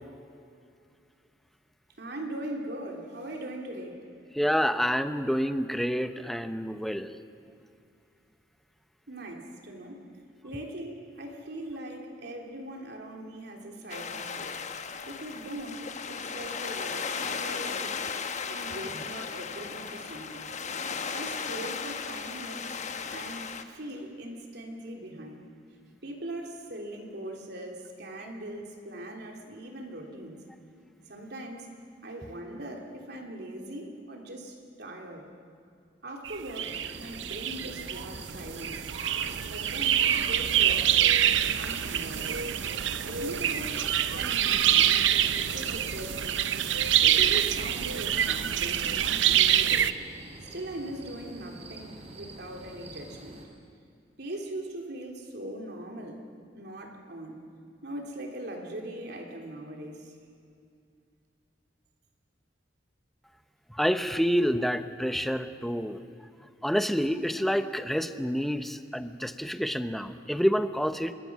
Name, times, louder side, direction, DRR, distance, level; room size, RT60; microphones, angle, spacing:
voice 1, 2.0-4.0 9.1-10.1 10.4-14.6 15.1-20.6 21.1-22.6 23.1-25.5 26.0-30.4 31.1-31.8 32.0-35.3 36.0-38.9 39.4-41.2 41.6-42.5 43.0-46.4 47.0-49.9 50.5-53.4 54.2-56.3 56.5-57.4 57.8-60.2, right 1 dB, 65° right, 2 dB, 3.2 m, -40 dB
voice 2, 4.4-7.1 63.7-66.0 66.6-71.1, equal, ahead, 9 dB, 0.8 m, -28 dB
sound 1, 13.9-23.6, left 6 dB, 40° left, 1.0 m, -36 dB
sound 2, 36.2-49.9, right 10 dB, 90° right, 0.7 m, -26 dB
sound 3, 36.6-53.5, right 2 dB, 40° right, 3.4 m, -46 dB
26.0 x 21.0 x 6.2 m, 2.4 s
head